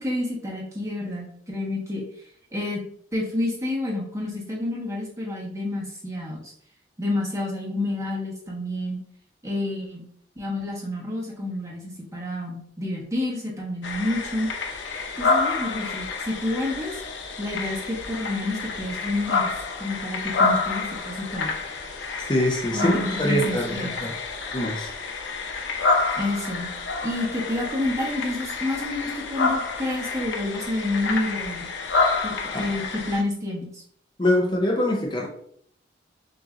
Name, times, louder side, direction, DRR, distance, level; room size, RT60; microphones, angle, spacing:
voice 1, 0.0-2.1 2.5-2.8 3.1-6.5 7.0-9.0 9.4-10.1 10.4-14.5 15.2-17.0 17.4-19.5 19.8-21.5 22.7-24.0 26.1-26.7 27.0-31.7 32.2-33.8, left 2 dB, 15° right, -3 dB, 1.2 m, -29 dB
sound 1, 13.8-33.2, left 4 dB, 80° left, 0.7 m, -28 dB
voice 2, 22.3-22.9 23.2-23.7 24.0-24.1 24.5-24.9 32.5-32.7 34.2-35.3, left 1 dB, 25° left, -1 dB, 0.6 m, -23 dB
6.5 x 3.0 x 2.4 m, 0.64 s
head